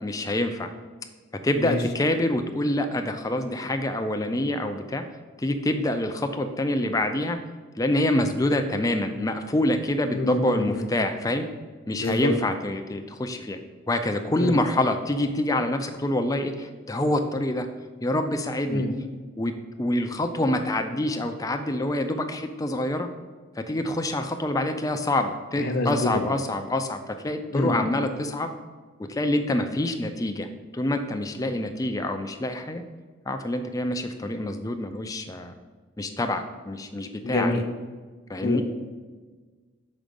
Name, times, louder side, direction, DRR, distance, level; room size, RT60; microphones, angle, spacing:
voice 1, 0.0-0.7 1.4-5.0 5.4-7.4 7.8-11.5 11.9-13.6 13.9-17.7 18.0-18.8 19.4-19.5 19.8-23.1 23.6-28.6 29.0-30.5 30.7-32.8 33.3-35.5 36.0-37.5 38.3-38.6, left 1 dB, 15° left, 6 dB, 0.4 m, -26 dB
voice 2, 10.1-10.9 11.9-12.3 14.4-14.6 18.7-18.9 25.6-26.2 27.5-27.7 31.4-31.6 37.2-37.6 38.4-38.6, left 2 dB, 45° left, 4 dB, 0.7 m, -26 dB
6.3 x 4.9 x 5.2 m, 1.4 s
head